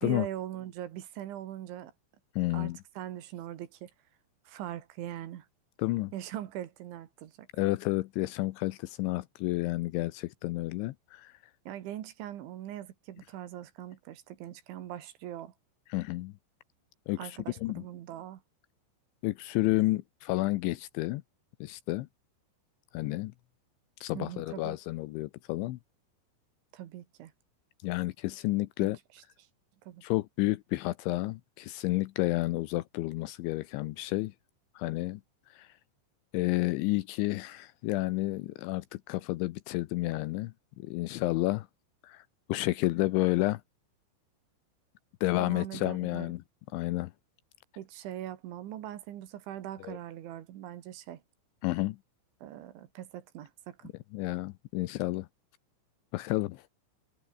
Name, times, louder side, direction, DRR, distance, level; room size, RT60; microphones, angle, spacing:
voice 1, 0.0-1.9 2.5-3.9 4.5-5.5 6.1-7.5 11.7-15.5 17.2-18.4 24.1-24.8 26.7-27.3 28.8-28.9 29.8-30.0 45.4-46.3 47.8-51.2 52.4-53.9, right 12 dB, 70° right, 4.0 m, -41 dB
voice 2, 2.4-2.8 5.8-6.1 7.6-11.3 15.9-16.3 17.1-17.8 19.2-21.2 21.6-22.1 22.9-23.3 24.0-25.8 27.8-29.0 30.0-34.3 34.8-35.2 35.5-35.7 36.3-41.7 42.0-42.2 42.5-43.6 45.2-46.4 46.7-47.1 49.8-50.0 51.6-52.0 54.1-55.3 56.1-56.6, left 19 dB, 80° left, 2.9 m, -30 dB
omnidirectional pair, 5.9 m